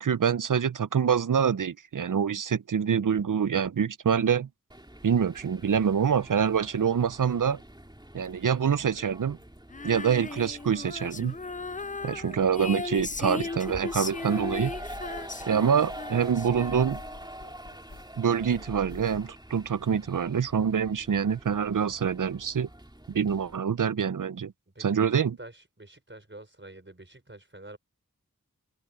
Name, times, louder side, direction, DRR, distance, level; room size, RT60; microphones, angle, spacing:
voice 1, 0.0-4.5 5.0-7.6 8.1-9.4 9.8-11.3 12.0-14.7 15.5-17.0 18.2-22.7 23.1-24.5 24.8-25.4, right 7 dB, 65° right, 0.6 m, -26 dB
sound 1, 4.7-23.6, right 1 dB, 15° right, 3.0 m, -45 dB
Female singing, 9.7-17.2, left 3 dB, 25° left, 0.5 m, -37 dB
sound 2, 13.0-19.3, left 3 dB, 70° left, 2.7 m, -47 dB
voice 2, 24.8-27.8, right 2 dB, 35° right, 5.2 m, -47 dB
wide cardioid pair, 45°, 33 cm